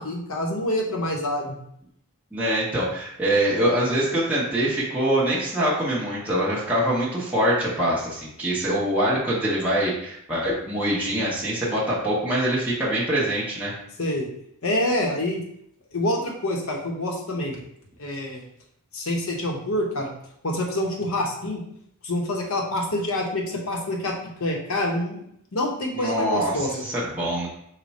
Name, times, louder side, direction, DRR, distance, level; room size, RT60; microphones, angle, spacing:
voice 1, 0.0-1.6 14.0-14.3 14.6-15.4 15.9-17.6 18.0-18.4 18.9-20.1 20.4-21.6 22.0-24.1 24.4-25.2 25.5-26.8, left 1 dB, 70° left, 0 dB, 0.9 m, -26 dB
voice 2, 2.3-13.7 25.9-27.5, right 1 dB, 5° right, -8 dB, 0.9 m, -24 dB
5.0 x 2.2 x 4.1 m, 0.72 s
head